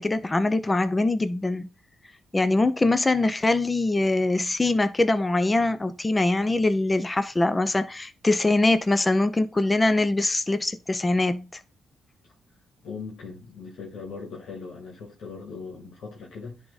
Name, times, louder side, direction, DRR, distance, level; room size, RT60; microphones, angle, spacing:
voice 1, 0.0-1.7 2.3-11.5, left 2 dB, 20° left, 0.7 m, -23 dB
voice 2, 12.8-16.6, left 4 dB, 75° left, 2.2 m, -39 dB
10.5 x 3.6 x 4.1 m
cardioid pair, 80°, 0 cm